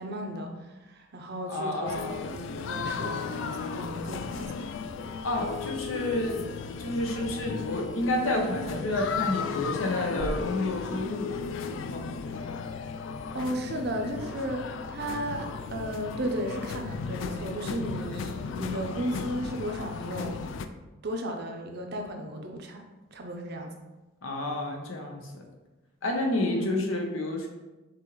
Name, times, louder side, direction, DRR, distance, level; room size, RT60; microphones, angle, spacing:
voice 1, 0.0-2.0 2.3-4.5 13.3-20.5 21.0-22.8 23.1-23.7 26.4-26.7, right 1 dB, 55° right, 3 dB, 0.6 m, -34 dB
voice 2, 1.5-2.2 5.2-6.4 6.8-12.6 24.2-25.4 26.0-27.5, left 1 dB, 85° left, 1 dB, 0.8 m, -30 dB
sound 1, 1.9-20.7, left 5 dB, 65° left, 0.3 m, -35 dB
6.0 x 2.5 x 3.0 m, 1.1 s
head